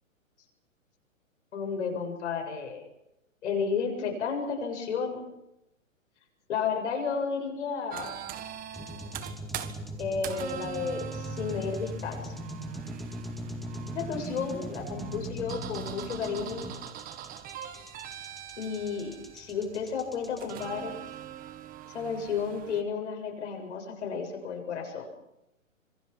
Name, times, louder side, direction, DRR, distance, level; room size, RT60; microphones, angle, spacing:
voice 1, 1.5-2.9 3.4-5.2 6.5-8.2 10.0-12.3 13.9-16.7 18.6-21.0 21.8-25.0, left 5 dB, 60° left, 3 dB, 7.5 m, -32 dB
sound 1, 7.9-22.8, right 11 dB, 20° right, 1.7 m, -42 dB
sound 2, 8.7-20.7, equal, ahead, 2.2 m, -40 dB
26.5 x 23.5 x 6.0 m, 0.87 s
hypercardioid pair, 125°, 40 cm